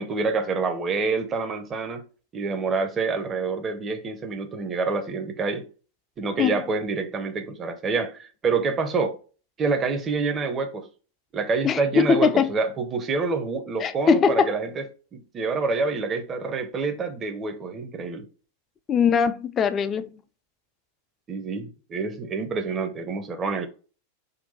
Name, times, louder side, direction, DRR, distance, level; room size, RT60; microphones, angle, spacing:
voice 1, 0.0-2.0 2.3-5.7 6.2-9.2 9.6-10.9 11.3-14.8 15.1-18.3 21.3-23.7, right 4 dB, 25° right, 0.6 m, -27 dB
voice 2, 11.6-12.5 13.8-14.5 18.9-20.1, left 6 dB, 25° left, 0.3 m, -21 dB
3.8 x 2.1 x 4.2 m
figure-of-eight pair, 90°, 0 cm